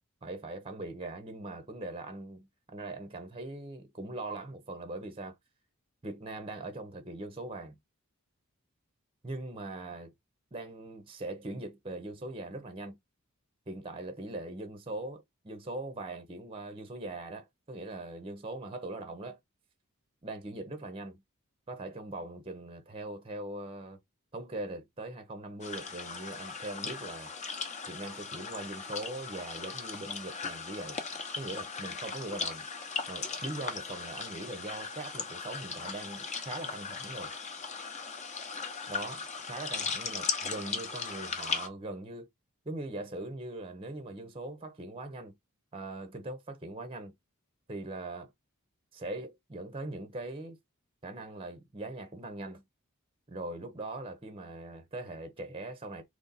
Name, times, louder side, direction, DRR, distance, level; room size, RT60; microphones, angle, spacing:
voice 1, 0.2-5.4 6.0-7.8 9.2-10.1 10.5-13.0 13.7-19.4 20.2-21.2 21.7-24.0 24.3-27.3 27.9-31.0 31.4-32.7 33.1-37.3 38.9-42.3 42.7-45.4 45.7-47.1 47.7-48.3 48.9-50.6 51.0-52.6 53.3-56.0, right 2 dB, 25° right, 0.7 m, -41 dB
sound 1, 25.6-41.7, left 5 dB, 30° left, 0.9 m, -38 dB
4.0 x 3.1 x 4.0 m
head